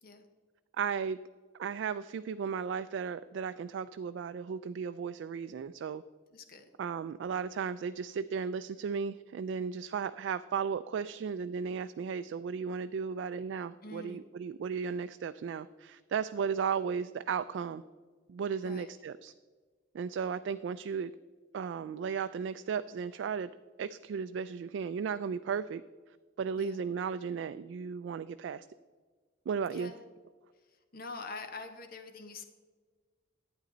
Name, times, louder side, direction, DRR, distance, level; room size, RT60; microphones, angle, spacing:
voice 1, 0.8-1.2 1.5-6.0 6.8-17.8 18.3-19.3 19.9-21.1 21.5-23.5 23.8-25.8 26.4-28.7 29.5-29.9, right 6 dB, 70° right, 11 dB, 0.3 m, -35 dB
voice 2, 6.3-6.7 13.8-14.2 18.6-18.9 26.6-26.8 29.7-30.0 30.7-32.4, left 3 dB, 55° left, 7 dB, 1.1 m, -45 dB
11.5 x 9.1 x 3.9 m, 1.4 s
head